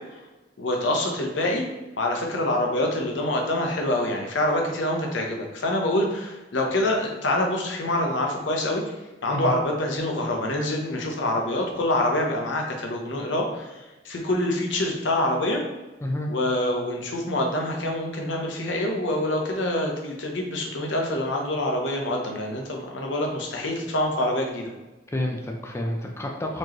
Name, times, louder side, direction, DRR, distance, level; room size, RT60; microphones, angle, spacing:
voice 1, 0.6-1.6 2.0-8.8 9.2-15.6 16.3-24.7, left 1 dB, 80° left, 1 dB, 0.8 m, -26 dB
voice 2, 16.0-16.3 25.1-26.6, left 1 dB, 15° left, 0 dB, 0.4 m, -29 dB
4.4 x 3.1 x 2.9 m, 1.1 s
head